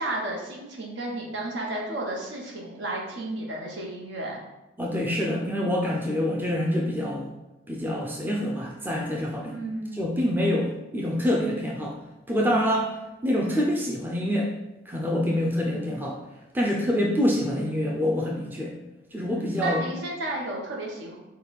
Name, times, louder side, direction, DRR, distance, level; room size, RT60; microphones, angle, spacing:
voice 1, 0.0-4.4 9.5-10.2 19.6-21.2, right 1 dB, 70° right, -2 dB, 1.0 m, -32 dB
voice 2, 4.8-7.3 7.7-9.6 9.9-11.9 12.3-12.9 13.2-14.5 14.9-16.2 16.5-18.7 19.1-19.8, left 1 dB, 10° right, -2 dB, 0.4 m, -26 dB
5.3 x 2.3 x 4.1 m, 0.99 s
head